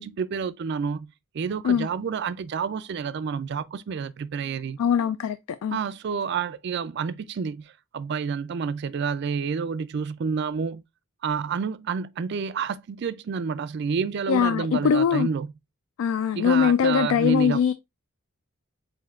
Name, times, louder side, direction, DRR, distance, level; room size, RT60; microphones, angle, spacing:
voice 1, 0.0-4.8 5.7-10.8 11.2-15.5 16.4-17.7, right 6 dB, 50° right, 0.3 m, -29 dB
voice 2, 4.8-5.8 14.3-15.3 16.0-17.7, left 7 dB, 80° left, 0.3 m, -22 dB
7.3 x 2.6 x 2.4 m
head